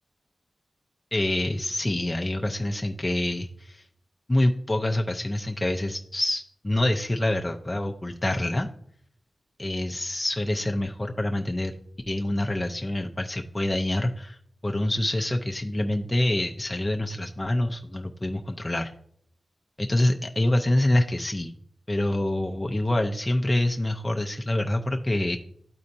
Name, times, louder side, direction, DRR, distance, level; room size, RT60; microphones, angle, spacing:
voice 1, 1.1-3.8 4.3-8.7 9.6-11.7 12.1-14.4 14.6-18.9 19.8-21.5 21.9-25.4, left 1 dB, 25° left, 3 dB, 0.5 m, -26 dB
12.5 x 4.2 x 2.6 m, 0.65 s
cardioid pair, 55°, 0 cm